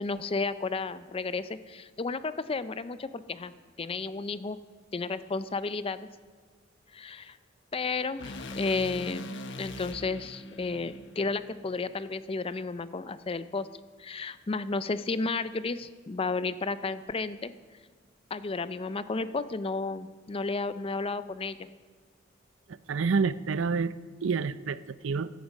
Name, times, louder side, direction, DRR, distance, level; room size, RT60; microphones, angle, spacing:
voice 1, 0.0-3.5 3.8-4.6 4.9-6.1 6.9-7.4 7.7-13.7 14.0-17.5 18.3-21.7, left 3 dB, 30° left, 14 dB, 0.5 m, -32 dB
sound 1, 8.2-12.4, left 1 dB, 65° left, 1.1 m, -42 dB
voice 2, 22.9-23.9 24.2-25.3, right 5 dB, 90° right, 16 dB, 0.5 m, -28 dB
16.0 x 11.0 x 5.3 m, 1.5 s
head